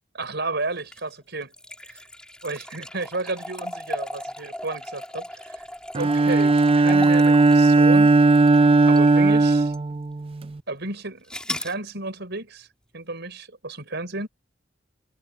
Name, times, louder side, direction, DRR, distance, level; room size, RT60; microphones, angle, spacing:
voice 1, 0.2-1.5 1.8-2.0 2.4-5.7 5.9-8.1 8.9-9.7 10.7-12.7 12.9-14.3, right 2 dB, 60° right, 6.1 m, -32 dB
sound 1, 0.8-9.2 9.7-9.8 11.3-11.8, left 1 dB, 5° left, 5.3 m, -37 dB
Bowed string instrument, 5.9-10.6, right 3 dB, 30° right, 0.4 m, -17 dB
head